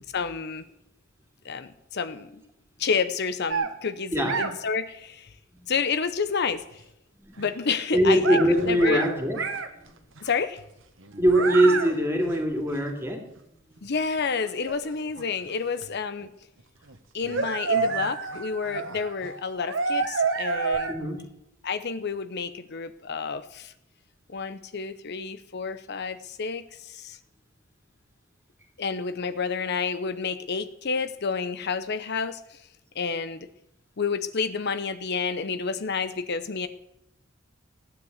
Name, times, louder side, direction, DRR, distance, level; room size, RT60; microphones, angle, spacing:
voice 1, 0.1-0.6 1.4-2.3 2.8-5.3 5.7-6.8 7.4-8.4 8.7-9.0 10.2-10.6 13.8-16.3 17.1-20.9 21.6-23.7 24.3-27.2 28.8-32.6 32.9-33.4 34.0-36.7, left 5 dB, 55° left, 11 dB, 0.8 m, -29 dB
sound 1, 3.5-3.7 4.2-4.5 7.4-7.5 8.0-9.1 9.4-9.7 10.2-10.3 11.0-11.9 12.2-12.3 12.7-12.8 13.8-13.9 14.3-15.5 15.8-15.9 16.9-17.0 17.2-20.9, right 4 dB, 65° right, 1.5 m, -29 dB
voice 2, 7.9-9.5 9.7-10.0 11.1-13.5 20.9-21.2, right 1 dB, 10° right, 3 dB, 2.6 m, -23 dB
15.5 x 9.9 x 8.1 m, 0.82 s
head